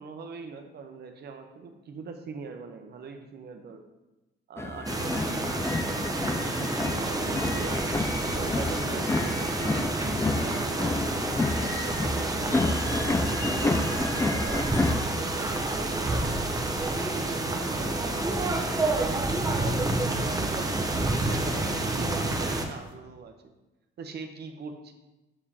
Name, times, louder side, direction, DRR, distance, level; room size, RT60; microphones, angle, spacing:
voice 1, 0.0-3.9 4.5-5.9 6.4-11.0 11.6-13.9 14.3-18.1 18.8-23.5 24.0-24.9, right 5 dB, 55° right, 6 dB, 0.7 m, -42 dB
sound 1, 4.6-15.0, left 3 dB, 15° left, 0.3 m, -30 dB
sound 2, 4.9-22.7, right 2 dB, 20° right, 0.7 m, -29 dB
sound 3, 6.3-22.9, left 2 dB, 45° left, 0.9 m, -45 dB
7.3 x 4.9 x 2.8 m, 1.0 s
cardioid pair, 90°, 20 cm